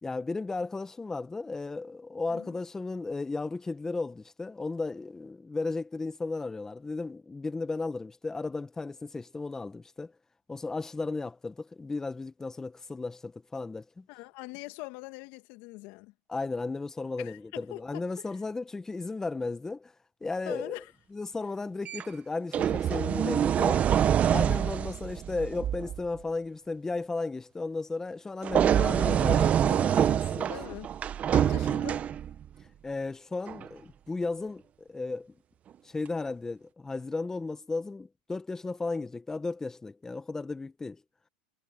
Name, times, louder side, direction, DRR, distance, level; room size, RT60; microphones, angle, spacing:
voice 1, 0.0-10.1 10.5-14.0 16.3-19.9 20.2-20.8 21.1-23.9 24.3-30.5 31.4-31.5 32.8-35.3 35.8-41.0, left 3 dB, 10° left, 1.2 m, -35 dB
voice 2, 14.1-16.1 17.2-18.0 20.5-20.9 30.5-30.9 31.3-32.0, left 23 dB, 55° left, 2.2 m, -42 dB
sound 1, 21.9-22.0 22.5-26.0 28.4-32.5 33.5-33.7, right 9 dB, 30° right, 1.2 m, -26 dB
hypercardioid pair, 115°, 5 cm